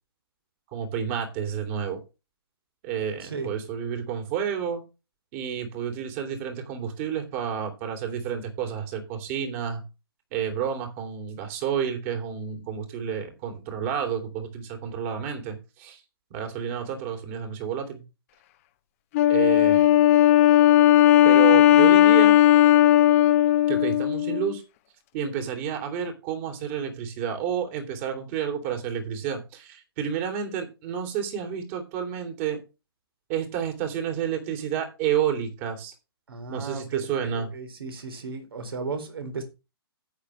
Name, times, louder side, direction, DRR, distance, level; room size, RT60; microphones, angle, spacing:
voice 1, 0.7-2.0 2.8-4.8 5.3-9.8 10.3-16.0 16.3-18.0 19.3-19.9 21.2-22.4 23.7-24.6 25.1-32.6 33.3-35.9 36.5-37.5, right 8 dB, 30° right, 3.1 m, -30 dB
voice 2, 3.2-3.5 36.3-39.4, right 4 dB, 65° right, 3.7 m, -35 dB
Wind instrument woodwind instrument, 19.1-24.6, left 12 dB, 35° left, 1.0 m, -17 dB
11.5 x 8.7 x 3.2 m
figure-of-eight pair, 135°, 13 cm